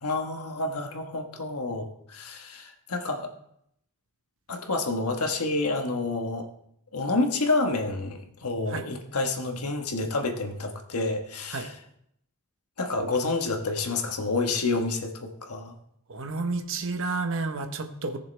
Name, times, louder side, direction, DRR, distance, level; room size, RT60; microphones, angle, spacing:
voice 1, 0.0-3.3 4.5-6.5 6.9-11.7 12.8-15.7, left 3 dB, 85° left, 4 dB, 1.4 m, -29 dB
voice 2, 16.1-18.2, right 3 dB, 60° right, 7 dB, 1.1 m, -30 dB
18.0 x 6.8 x 3.4 m, 0.74 s
head